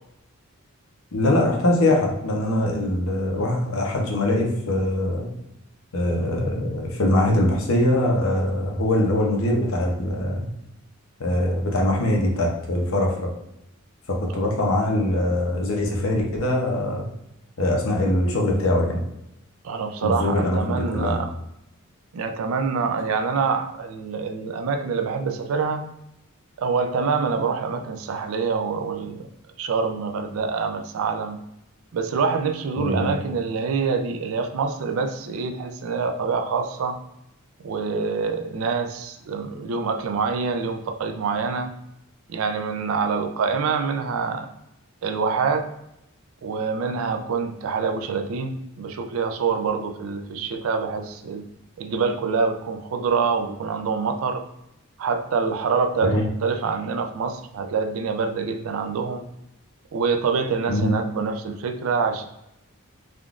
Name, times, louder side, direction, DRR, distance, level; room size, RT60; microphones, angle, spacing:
voice 1, 1.1-5.3 5.9-10.5 11.2-13.3 14.1-17.1 17.6-19.0 20.0-21.2 32.8-33.1 56.0-56.2 60.7-60.9, left 1 dB, 65° left, 0 dB, 0.7 m, -22 dB
voice 2, 19.6-21.3 22.1-25.8 26.6-29.3 29.6-31.4 31.9-37.0 37.6-41.7 42.3-44.5 45.0-45.7 46.4-51.4 51.8-54.4 55.0-59.3 59.9-62.3, right 5 dB, 70° right, 6 dB, 0.4 m, -26 dB
3.5 x 2.4 x 2.4 m, 0.84 s
head